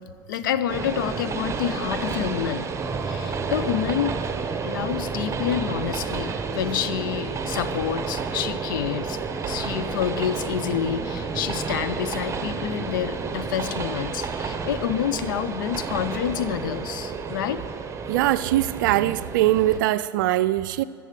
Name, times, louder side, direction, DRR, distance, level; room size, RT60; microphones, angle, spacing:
voice 1, 0.3-2.7 3.0-4.2 4.6-9.2 9.4-17.6, left 10 dB, 70° left, 0.7 m, -28 dB
Train, 0.7-19.8, right 5 dB, 25° right, 1.1 m, -31 dB
sound 1, 2.8-12.3, right 3 dB, 10° right, 2.2 m, -37 dB
voice 2, 18.1-20.8, right 14 dB, 70° right, 0.4 m, -22 dB
14.5 x 7.0 x 7.7 m
hypercardioid pair, 75°, 11 cm